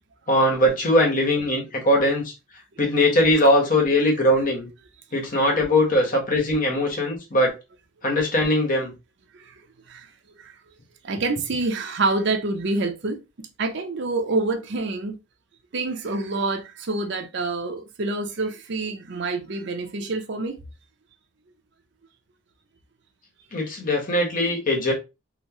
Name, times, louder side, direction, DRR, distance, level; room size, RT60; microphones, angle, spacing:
voice 1, 0.3-2.3 2.8-4.7 5.1-7.5 8.0-8.9 23.5-24.9, left 1 dB, 40° left, 1.0 m, -20 dB
voice 2, 11.0-15.2 15.7-20.6, right 3 dB, 55° right, 0.6 m, -27 dB
3.9 x 2.0 x 2.8 m
head